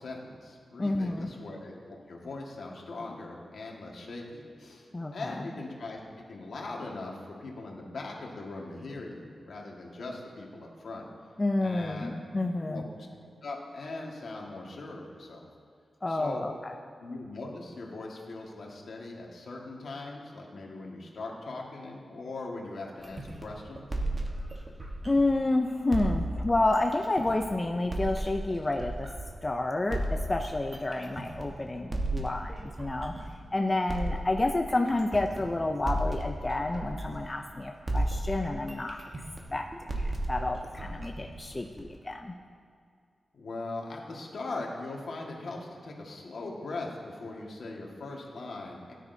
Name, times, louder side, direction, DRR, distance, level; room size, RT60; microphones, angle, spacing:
voice 1, 0.0-6.0 6.3-11.0 11.6-12.1 12.6-13.1 13.4-15.5 16.1-16.4 17.0-23.9 43.3-48.9, left 2 dB, 70° left, -1 dB, 1.7 m, -40 dB
voice 2, 0.8-1.3 4.9-5.4 11.4-12.8 16.0-16.7 25.0-29.1 29.4-33.1 33.5-39.0 39.5-39.7 39.9-42.3, left 2 dB, 20° left, 3 dB, 0.5 m, -29 dB
sound 1, 23.0-25.5 25.9-29.4 29.9-33.4 33.9-37.6 37.9-42.0, right 1 dB, 30° right, 1.2 m, -34 dB
16.5 x 9.9 x 2.7 m, 2.2 s
wide cardioid pair, 130°, 0 cm